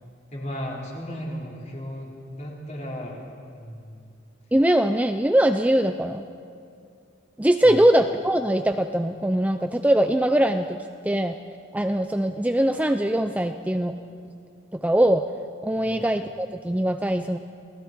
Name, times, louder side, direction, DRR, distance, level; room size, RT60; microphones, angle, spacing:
voice 1, 0.3-3.2 3.5-4.0 7.6-7.8 15.7-16.0, equal, 35° left, -3 dB, 4.4 m, -35 dB
voice 2, 4.5-6.2 7.4-11.4 11.7-14.0 14.7-15.3 15.6-17.4, right 1 dB, 10° right, 7 dB, 0.5 m, -22 dB
29.5 x 19.5 x 4.6 m, 2.4 s
head